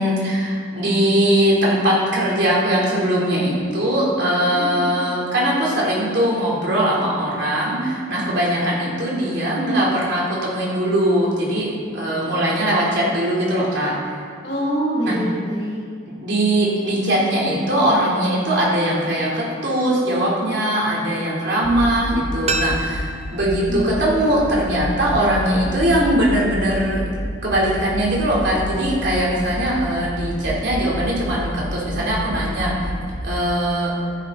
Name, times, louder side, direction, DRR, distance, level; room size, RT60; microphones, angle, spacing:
voice 1, 0.0-14.1 15.0-15.2 16.1-27.0 27.4-32.7 33.2-33.9, right 1 dB, 60° right, -5 dB, 3.8 m, -20 dB
voice 2, 4.4-5.0 14.4-15.8 23.7-24.2, equal, 55° left, -6 dB, 3.7 m, -25 dB
sound 1, 21.6-33.2, equal, 30° left, 1.0 m, -30 dB
sound 2, 22.5-25.3 25.5-25.6, right 2 dB, 35° right, 0.8 m, -30 dB
15.0 x 10.5 x 4.2 m, 2.1 s
head